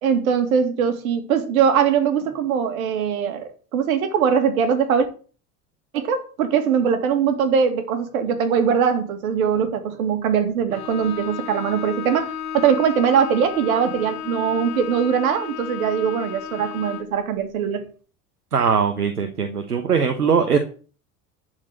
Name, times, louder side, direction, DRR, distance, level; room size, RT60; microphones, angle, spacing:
voice 1, 0.0-5.1 5.9-17.9, right 7 dB, 65° right, 2.3 m, -21 dB
Bowed string instrument, 10.7-17.2, left 8 dB, 65° left, 1.6 m, -33 dB
voice 2, 18.5-20.6, right 6 dB, 80° right, 1.1 m, -20 dB
12.0 x 4.7 x 8.0 m
figure-of-eight pair, 70°, 45 cm